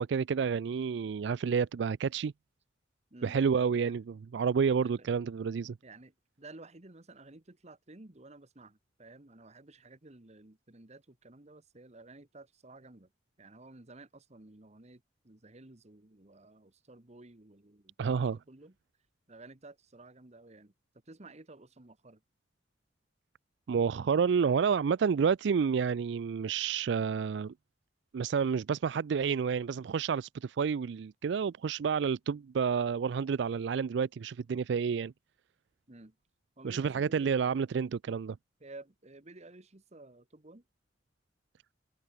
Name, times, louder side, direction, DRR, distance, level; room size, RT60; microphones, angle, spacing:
voice 1, 0.0-2.3 3.2-4.0 4.3-5.8 18.0-18.4 23.7-27.5 28.1-35.1 36.6-38.4, right 6 dB, 70° right, 0.4 m, -29 dB
voice 2, 3.1-3.4 3.7-3.9 4.8-5.1 5.8-13.1 13.4-18.8 19.3-20.7 21.0-22.2 35.9-36.2 36.6-37.5 38.6-40.6, right 2 dB, 35° right, 1.4 m, -53 dB
head